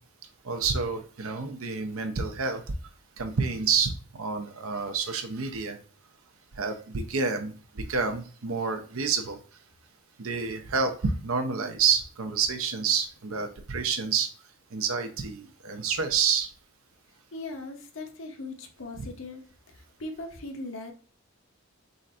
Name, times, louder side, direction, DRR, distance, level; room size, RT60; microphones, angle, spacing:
voice 1, 0.4-2.6 3.2-5.8 6.6-9.4 10.2-14.3 14.7-16.5 19.0-19.1, right 5 dB, 75° right, 6 dB, 0.7 m, -28 dB
voice 2, 17.3-19.4 19.7-20.9, left 2 dB, 65° left, 4 dB, 0.9 m, -39 dB
4.0 x 2.5 x 4.2 m, 0.41 s
head